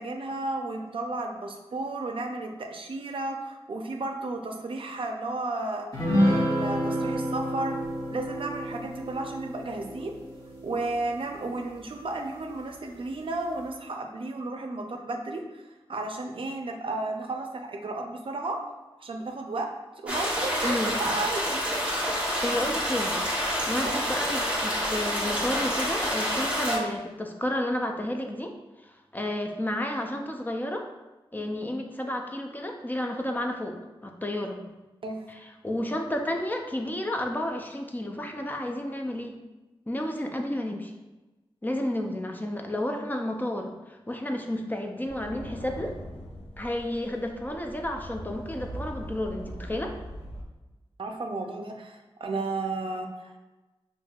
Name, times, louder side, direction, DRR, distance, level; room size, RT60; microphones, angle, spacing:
voice 1, 0.0-5.9 6.2-7.8 8.1-10.1 10.6-15.6 15.9-18.6 19.0-19.7 20.0-21.6 23.6-24.0 26.7-26.9 35.0-35.3 51.0-53.4, right 2 dB, 65° right, 3 dB, 0.5 m, -33 dB
sound 1, 5.9-11.6, equal, 35° left, 1.1 m, -29 dB
sound 2, 20.1-26.8, equal, 10° right, 1.0 m, -28 dB
voice 2, 20.6-20.9 22.4-23.2 23.7-28.5 28.8-30.9 31.3-33.7 34.0-34.6 35.3-39.3 39.9-40.9 41.6-45.9 46.6-49.9, left 1 dB, 20° left, 3 dB, 0.4 m, -31 dB
sound 3, 45.1-50.4, equal, 90° left, 0.6 m, -41 dB
5.4 x 2.5 x 2.3 m, 1.1 s
wide cardioid pair, 90°, 10 cm